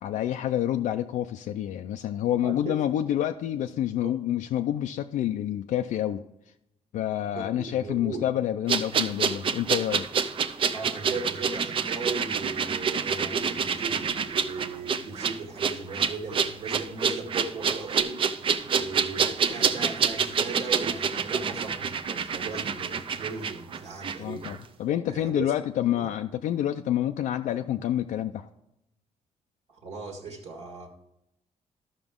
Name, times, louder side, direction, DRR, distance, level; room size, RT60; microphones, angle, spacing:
voice 1, 0.0-6.2 6.9-10.1 24.2-28.5, left 11 dB, 85° left, 6 dB, 0.4 m, -28 dB
voice 2, 2.4-2.8 4.0-4.1 7.3-8.3 10.7-18.2 18.7-24.5 25.1-25.5 26.0-26.1 29.7-30.9, right 4 dB, 60° right, 1 dB, 1.6 m, -37 dB
sound 1, 8.7-24.2 24.4-24.6, right 6 dB, 45° right, 0.5 m, -27 dB
13.5 x 6.0 x 3.6 m, 0.85 s
cardioid pair, 150°, 13 cm